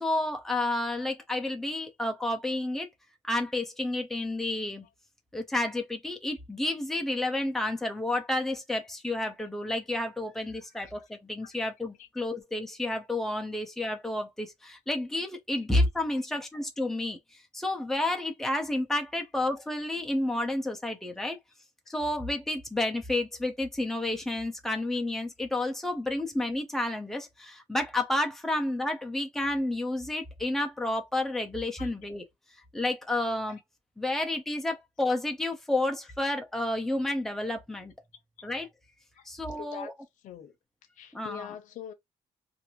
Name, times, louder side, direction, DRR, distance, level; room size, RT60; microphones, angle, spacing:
voice 1, 0.0-2.9 3.2-4.9 5.3-17.2 17.5-21.4 21.9-32.2 32.7-33.6 34.0-37.9 38.4-38.7 39.3-39.9 41.1-41.5, left 1 dB, 5° left, 0.5 m, -30 dB
voice 2, 39.6-39.9 40.2-40.5 41.0-41.9, left 9 dB, 85° left, 0.6 m, -43 dB
2.5 x 2.5 x 2.9 m
cardioid pair, 135°, 13 cm